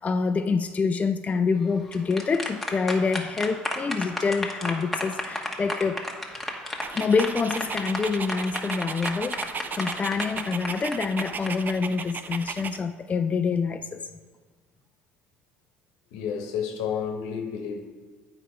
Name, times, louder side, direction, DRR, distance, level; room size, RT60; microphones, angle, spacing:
voice 1, 0.0-6.0 6.9-14.0, left 4 dB, 25° left, 7 dB, 0.3 m, -26 dB
sound 1, 1.7-11.5, left 1 dB, 5° left, 1.3 m, -32 dB
Dog, 6.8-12.8, right 6 dB, 35° right, 0.4 m, -36 dB
voice 2, 16.1-17.8, left 7 dB, 75° left, 4 dB, 1.0 m, -30 dB
8.3 x 4.8 x 4.4 m, 1.4 s
hypercardioid pair, 65°, 5 cm